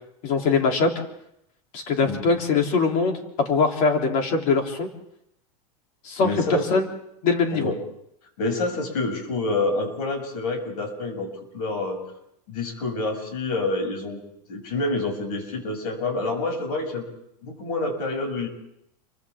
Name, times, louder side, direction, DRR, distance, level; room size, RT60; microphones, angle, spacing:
voice 1, 0.2-0.9 1.7-4.9 6.1-6.9 7.2-7.7, left 4 dB, 45° left, 2 dB, 3.5 m, -22 dB
voice 2, 6.2-6.7 7.5-7.8 8.4-12.0 12.5-14.2 14.5-17.0 17.4-18.5, left 2 dB, 85° left, 3 dB, 7.8 m, -27 dB
29.5 x 24.5 x 3.8 m, 0.76 s
supercardioid pair, 160°, 20 cm